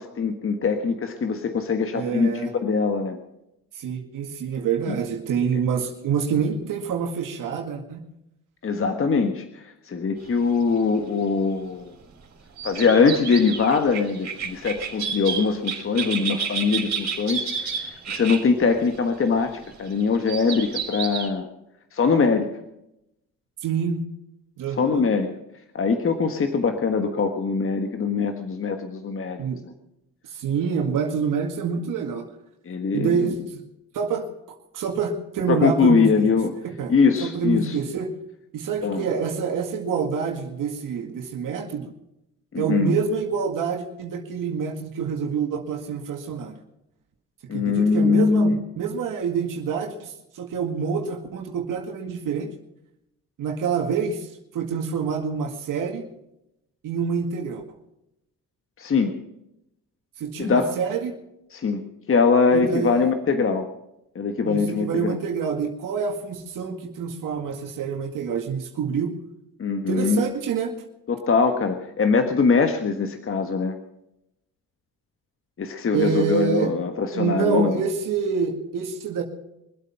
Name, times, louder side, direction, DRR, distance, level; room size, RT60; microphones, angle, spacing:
voice 1, 0.0-2.3 2.6-3.2 4.9-5.0 8.6-11.9 12.6-21.5 21.9-22.5 24.8-25.3 25.7-29.7 32.6-33.3 35.5-36.5 36.9-37.8 38.8-39.0 42.5-42.9 47.5-48.6 58.8-59.2 60.4-60.7 61.5-61.8 62.1-63.7 64.1-65.1 69.6-70.2 71.1-73.7 75.6-77.8, left 5 dB, 40° left, 7 dB, 1.5 m, -22 dB
voice 2, 1.9-2.5 3.8-8.0 23.6-24.0 24.6-25.0 29.4-29.6 30.2-32.3 32.9-33.6 33.9-34.3 34.7-36.3 36.6-36.9 37.2-38.1 38.5-41.9 42.6-46.6 47.5-52.5 53.4-56.1 56.8-57.6 60.2-61.1 62.5-63.0 64.4-69.2 69.9-70.7 75.9-76.7 77.1-79.2, right 6 dB, 70° right, 2 dB, 2.0 m, -27 dB
sound 1, 10.2-11.2 12.6-21.3, right 6 dB, 50° right, 3.8 m, -31 dB
24.0 x 8.4 x 5.8 m, 0.84 s
cardioid pair, 85°, 33 cm